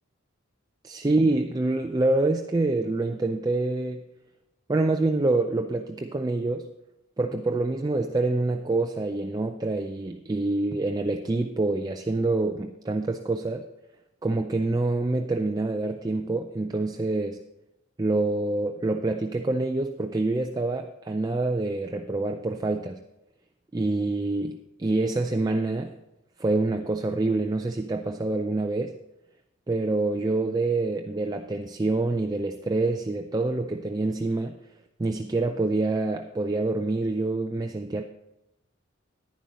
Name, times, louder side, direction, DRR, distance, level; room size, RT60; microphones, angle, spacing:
voice 1, 0.8-4.0 4.7-6.7 7.2-13.7 14.2-17.4 18.0-23.0 23.7-25.9 26.4-29.0 29.7-34.6 35.0-38.0, right 2 dB, 20° right, 5 dB, 0.4 m, -26 dB
10.5 x 10.0 x 4.1 m, 0.90 s
head